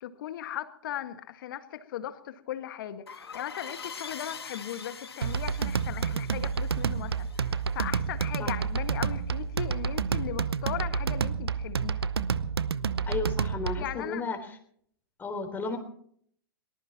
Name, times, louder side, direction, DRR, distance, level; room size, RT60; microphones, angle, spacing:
voice 1, 0.0-12.1 13.8-14.2, left 11 dB, 55° left, 10 dB, 1.8 m, -38 dB
sound 1, 3.1-8.4, left 6 dB, 85° left, 2.0 m, -44 dB
sound 2, 5.2-13.9, right 6 dB, 80° right, 0.9 m, -29 dB
voice 2, 13.1-14.4 15.2-15.8, left 4 dB, 15° left, 4 dB, 3.8 m, -33 dB
22.5 x 20.0 x 3.0 m, 0.63 s
hypercardioid pair, 115°, 13 cm